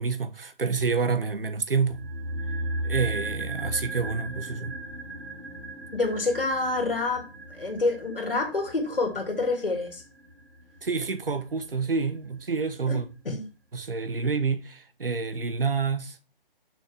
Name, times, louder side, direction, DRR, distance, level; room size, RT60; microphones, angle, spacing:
voice 1, 0.0-2.0 2.8-4.8 10.8-13.1 13.7-16.2, right 5 dB, 70° right, 1.1 m, -28 dB
sound 1, 1.9-12.1 12.4-12.5, right 1 dB, 90° right, 3.4 m, -36 dB
voice 2, 5.9-7.2 7.5-10.0 12.9-13.0 13.2-13.4, left 3 dB, 70° left, 2.6 m, -27 dB
6.5 x 6.3 x 3.4 m
figure-of-eight pair, 145°, 29 cm